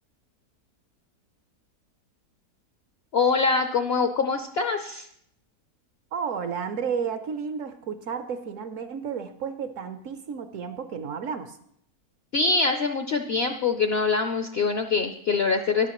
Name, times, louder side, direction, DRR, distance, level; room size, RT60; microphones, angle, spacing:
voice 1, 3.1-5.1 12.3-15.9, left 4 dB, 65° left, 6 dB, 0.6 m, -24 dB
voice 2, 6.1-11.6, right 6 dB, 65° right, 10 dB, 0.9 m, -32 dB
13.0 x 10.5 x 3.0 m, 0.71 s
omnidirectional pair, 1.7 m